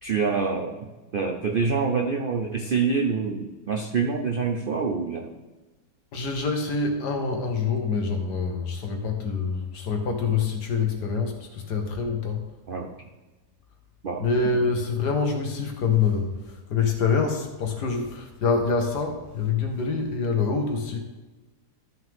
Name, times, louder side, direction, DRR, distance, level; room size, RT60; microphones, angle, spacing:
voice 1, 0.0-5.4 12.7-12.9 14.0-14.5, right 5 dB, 65° right, 3 dB, 0.5 m, -26 dB
voice 2, 6.1-12.5 14.2-21.0, left 5 dB, 80° left, 3 dB, 1.9 m, -26 dB
12.5 x 6.4 x 3.6 m, 1.2 s
omnidirectional pair, 1.7 m